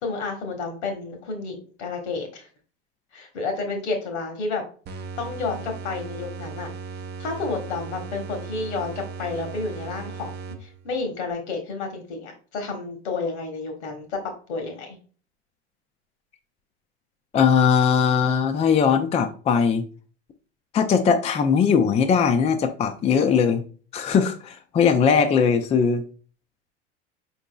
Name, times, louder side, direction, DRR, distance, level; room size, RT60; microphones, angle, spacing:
voice 1, 0.0-2.5 3.1-4.6 5.2-6.7 7.2-10.3 10.6-15.0, left 4 dB, 75° left, 4 dB, 1.4 m, -30 dB
sound 1, 4.8-11.0, right 5 dB, 30° right, 0.6 m, -37 dB
voice 2, 17.3-19.8 20.7-23.6 23.9-26.0, left 6 dB, 20° left, 7 dB, 0.4 m, -20 dB
4.5 x 4.0 x 2.3 m, 0.40 s
hypercardioid pair, 85°, 34 cm